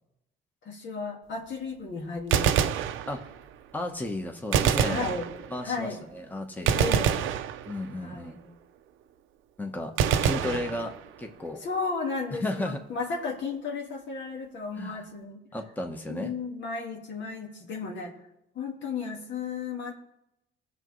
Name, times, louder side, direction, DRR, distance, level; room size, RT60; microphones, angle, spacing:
voice 1, 0.6-2.7 4.8-5.3 5.6-6.1 6.7-7.3 8.0-8.5 10.0-10.8 11.6-15.4 16.1-18.1 18.6-19.9, left 4 dB, 65° left, 1 dB, 1.9 m, -34 dB
Gunshot gunfire, 2.2-3.5 4.5-5.7 6.7-8.1 10.0-11.3, right 8 dB, 85° right, 0.6 m, -26 dB
voice 2, 3.7-5.1 5.5-6.9 7.7-8.4 9.6-9.9 10.2-10.9 11.2-11.6 12.4-12.8 14.8-15.0 15.5-16.3, left 1 dB, 10° left, 3 dB, 1.1 m, -33 dB
18.5 x 6.8 x 3.2 m, 0.87 s
cardioid pair, 90°, 20 cm